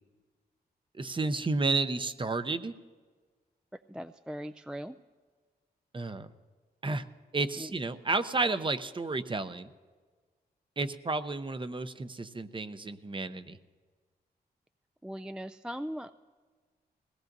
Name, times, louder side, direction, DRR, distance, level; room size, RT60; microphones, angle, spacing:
voice 1, 1.0-2.7 5.9-6.3 6.8-7.0 7.3-9.7 10.8-13.6, right 3 dB, 30° right, 12 dB, 0.7 m, -31 dB
voice 2, 3.9-4.9 7.6-7.7 15.0-16.1, equal, 5° right, 10 dB, 0.3 m, -39 dB
20.5 x 17.0 x 2.7 m, 1.5 s
cardioid pair, 60°, 17 cm